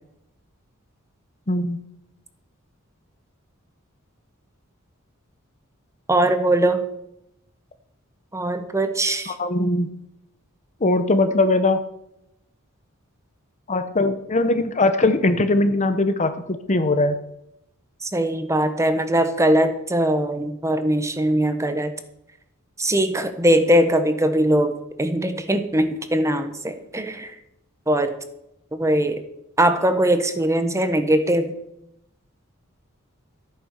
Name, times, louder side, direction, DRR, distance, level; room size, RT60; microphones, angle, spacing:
voice 1, 1.5-1.8 9.3-9.9 10.8-11.8 13.7-17.1, left 2 dB, 35° left, 9 dB, 1.0 m, -20 dB
voice 2, 6.1-6.8 8.3-9.3 18.0-21.9 22.8-27.3 27.9-28.1 28.7-29.2 29.6-31.5, right 1 dB, 15° right, 9 dB, 1.2 m, -21 dB
14.0 x 9.3 x 6.7 m, 0.81 s
head